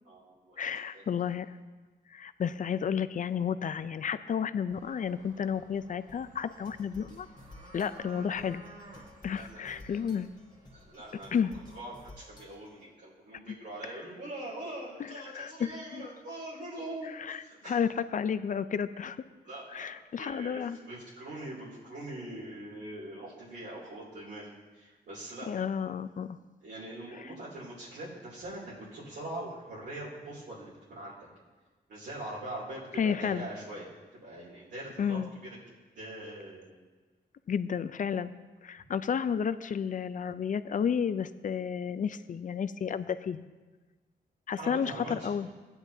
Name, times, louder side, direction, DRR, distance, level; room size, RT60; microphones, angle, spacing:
voice 1, 0.0-0.7 0.9-1.0 9.3-10.0 10.7-17.8 19.4-25.5 26.6-31.2 31.9-35.6 35.9-36.7 44.6-45.3, right 1 dB, 80° right, -8 dB, 2.8 m, -43 dB
voice 2, 0.6-1.5 2.1-7.3 7.7-8.6 9.2-10.3 11.3-11.5 15.0-16.1 17.3-17.4 17.7-19.2 19.7-20.8 25.5-26.4 33.0-33.5 35.0-35.3 37.5-38.3 38.6-43.5 44.5-45.5, left 7 dB, 50° left, 13 dB, 0.4 m, -32 dB
sound 1, 4.7-12.1, right 2 dB, 45° right, 1.5 m, -55 dB
sound 2, 6.1-12.9, left 1 dB, 25° left, 1.6 m, -54 dB
15.0 x 9.8 x 2.7 m, 1.3 s
cardioid pair, 90°, 17 cm